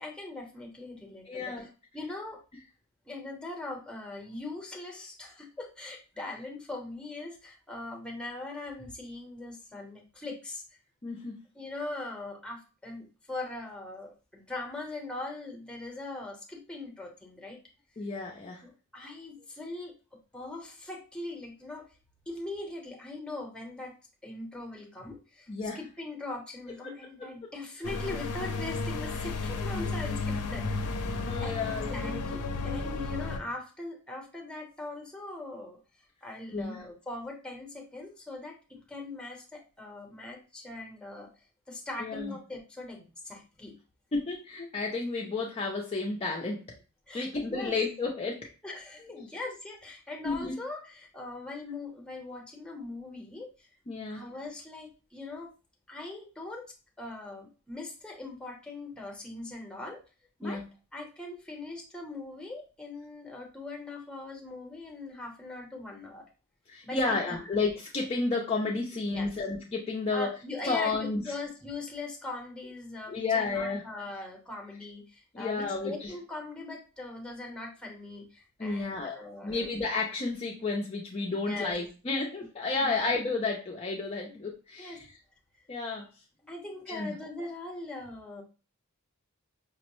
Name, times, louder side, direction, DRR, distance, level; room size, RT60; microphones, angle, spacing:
voice 1, 0.0-1.7 1.9-2.4 3.0-10.6 11.5-17.6 18.6-21.8 22.3-24.0 24.2-30.7 31.1-31.6 31.9-35.8 36.2-41.3 41.7-43.8 47.1-47.8 48.6-53.7 54.1-55.5 55.9-60.0 60.4-60.6 60.9-66.2 66.8-67.4 69.1-69.3 70.1-79.7 81.4-81.8 82.4-82.5 82.8-83.1 84.8-85.0 86.4-88.4, left 2 dB, 5° left, 0 dB, 0.8 m, -41 dB
voice 2, 1.3-1.7 11.0-11.4 18.0-18.6 25.5-25.8 31.3-32.2 36.5-36.8 42.0-42.3 44.1-46.6 47.1-48.5 49.1-49.2 50.2-50.5 53.9-54.2 60.4-60.6 66.7-70.3 70.6-71.2 73.1-73.8 75.3-76.1 78.6-79.2 79.4-85.1 85.7-86.0 86.9-87.1, left 3 dB, 25° left, -1 dB, 0.4 m, -31 dB
sound 1, 27.8-33.4, left 3 dB, 90° left, 0.5 m, -33 dB
5.2 x 2.0 x 3.0 m, 0.34 s
head